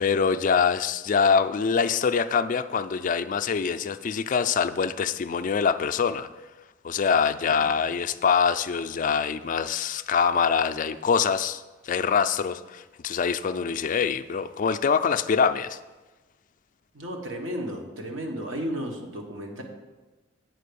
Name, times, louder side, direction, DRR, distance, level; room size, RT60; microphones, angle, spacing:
voice 1, 0.0-6.3 6.8-15.8, left 6 dB, 40° left, 11 dB, 0.3 m, -24 dB
voice 2, 16.9-19.6, equal, 85° right, 1 dB, 1.4 m, -33 dB
8.2 x 4.6 x 6.8 m, 1.2 s
head